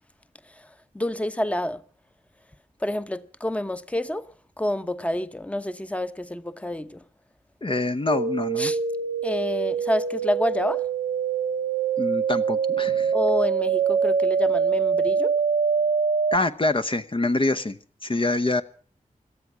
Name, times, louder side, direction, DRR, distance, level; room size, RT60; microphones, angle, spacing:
voice 1, 0.9-1.8 2.8-4.3 4.6-7.0 8.6-8.8 9.2-10.8 13.1-15.3, left 1 dB, 10° left, 1.0 m, -28 dB
voice 2, 7.6-8.7 12.0-13.1 16.3-18.6, left 2 dB, 35° left, 0.9 m, -25 dB
sound 1, 8.1-16.4, right 6 dB, 75° right, 0.8 m, -24 dB
17.5 x 13.0 x 6.1 m
cardioid pair, 50°, 15 cm